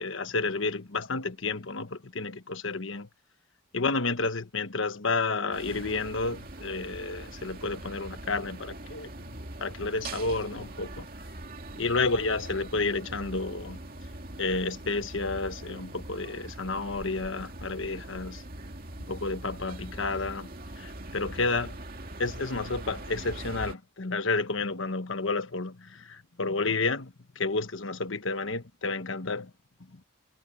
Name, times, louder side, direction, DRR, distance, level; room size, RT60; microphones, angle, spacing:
voice 1, 0.0-3.1 3.7-9.1 9.6-11.1 11.8-13.8 14.4-18.4 19.1-20.5 20.8-21.8 22.2-29.5 29.9-30.0, left 3 dB, 75° left, 1.3 m, -31 dB
sound 1, 5.5-23.7, right 1 dB, 45° right, 2.5 m, -42 dB
head